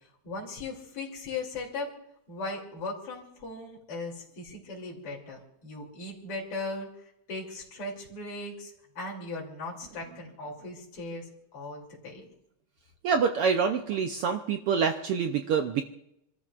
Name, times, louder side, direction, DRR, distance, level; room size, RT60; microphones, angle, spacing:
voice 1, 0.2-1.9 2.3-6.9 7.3-12.3, left 3 dB, 50° left, -2 dB, 3.8 m, -38 dB
voice 2, 13.0-15.8, right 6 dB, 80° right, 6 dB, 1.3 m, -26 dB
28.5 x 13.5 x 2.5 m, 0.83 s
omnidirectional pair, 3.4 m